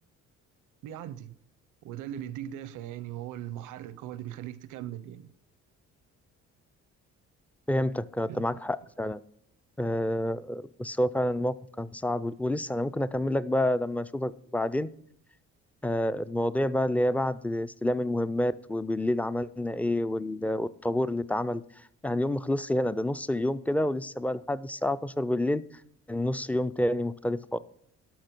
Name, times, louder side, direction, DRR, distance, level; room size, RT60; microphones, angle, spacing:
voice 1, 0.8-1.3 1.8-5.3 8.3-8.4, right 11 dB, 85° right, 0.7 m, -39 dB
voice 2, 7.7-9.2 9.8-14.9 15.8-21.6 22.0-25.6 26.1-27.6, left 1 dB, 5° left, 0.3 m, -28 dB
11.5 x 6.2 x 5.9 m
cardioid pair, 90°, 30 cm